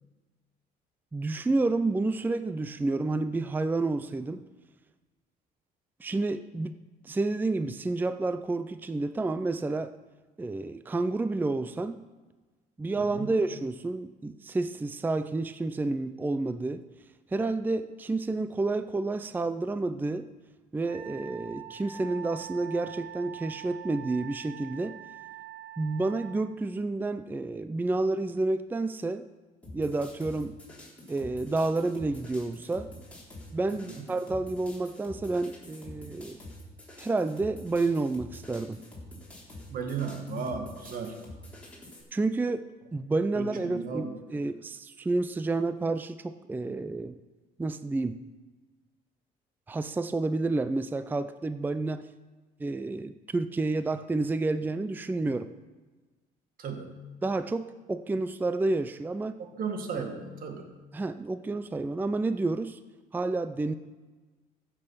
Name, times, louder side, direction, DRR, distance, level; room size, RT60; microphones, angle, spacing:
voice 1, 1.1-4.5 6.0-6.8 7.0-9.9 10.4-12.0 12.8-16.8 17.3-20.3 20.7-25.0 25.8-29.3 29.7-30.5 31.1-32.9 33.5-36.4 37.0-38.8 42.1-47.2 47.6-48.2 49.7-52.0 52.6-55.5 57.2-59.3 60.9-62.8 63.1-63.7, right 2 dB, 10° right, 12 dB, 0.4 m, -30 dB
voice 2, 12.9-13.4 33.7-34.2 39.7-41.2 43.3-44.2 56.6-57.1 59.4-60.8, right 5 dB, 55° right, 5 dB, 1.8 m, -36 dB
Wind instrument woodwind instrument, 20.8-26.4, right 10 dB, 90° right, 2.0 m, -44 dB
sound 1, 29.6-42.0, left 1 dB, 5° left, 3.8 m, -47 dB
14.5 x 6.8 x 5.7 m, 1.3 s
cardioid pair, 110°, 17 cm